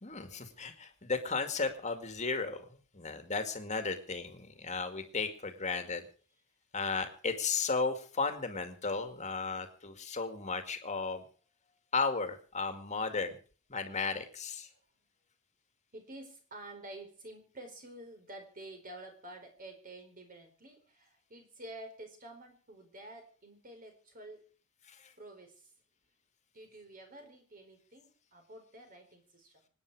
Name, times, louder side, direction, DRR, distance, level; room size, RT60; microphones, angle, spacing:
voice 1, 0.0-6.1 6.7-11.2 11.9-13.4 13.7-14.7 24.9-25.1, left 4 dB, 30° left, 7 dB, 2.2 m, -35 dB
voice 2, 15.9-24.4 25.2-25.7 26.5-29.7, right 1 dB, 40° right, 5 dB, 4.5 m, -50 dB
25.5 x 9.6 x 4.9 m, 0.41 s
head